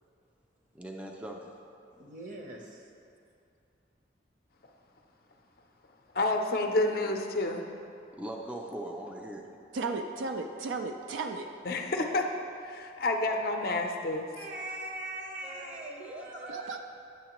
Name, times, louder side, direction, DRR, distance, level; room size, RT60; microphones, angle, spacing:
voice 1, 0.7-1.5 8.2-9.5 15.4-16.8, right 1 dB, 5° right, 1 dB, 0.3 m, -41 dB
voice 2, 2.0-2.9 14.4-16.8, right 2 dB, 45° right, 0 dB, 0.7 m, -41 dB
voice 3, 6.1-7.6 11.7-12.2 12.6-14.3, left 2 dB, 50° left, 3 dB, 0.5 m, -29 dB
voice 4, 9.7-11.5 16.5-16.8, right 3 dB, 85° right, 5 dB, 0.4 m, -34 dB
9.2 x 6.5 x 3.0 m, 2.6 s
head